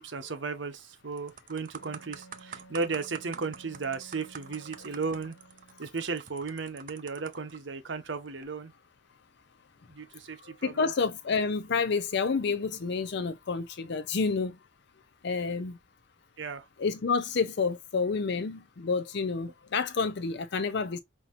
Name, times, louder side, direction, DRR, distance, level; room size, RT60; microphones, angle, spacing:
voice 1, 0.0-5.3 5.8-8.7 9.9-10.9 16.4-16.6, right 4 dB, 60° right, 0.9 m, -35 dB
sound 1, 0.5-0.8 1.2-7.6 8.3-8.4, right 7 dB, 40° right, 0.5 m, -47 dB
Wind instrument woodwind instrument, 1.8-5.9, right 2 dB, 80° left, 1.1 m, -54 dB
voice 2, 10.4-14.6 15.2-15.8 16.8-21.0, left 4 dB, 55° left, 0.5 m, -29 dB
5.6 x 2.8 x 2.5 m
head